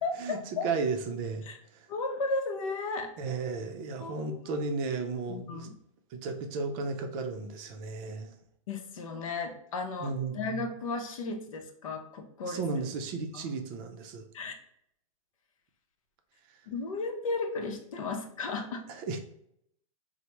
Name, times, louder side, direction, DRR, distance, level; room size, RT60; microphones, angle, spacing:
voice 1, 0.0-0.7 1.4-1.6 1.9-3.1 4.0-4.6 5.3-5.7 8.7-12.9 13.3-13.5 14.3-14.5 16.7-18.8, left 3 dB, 75° left, 5 dB, 0.6 m, -35 dB
voice 2, 0.6-1.4 1.7-1.9 3.2-5.7 6.1-8.3 10.0-10.7 12.5-14.3 16.5-16.6 18.9-19.2, right 4 dB, 40° right, 5 dB, 0.5 m, -34 dB
3.2 x 2.0 x 2.9 m, 0.73 s
hypercardioid pair, 125°, 18 cm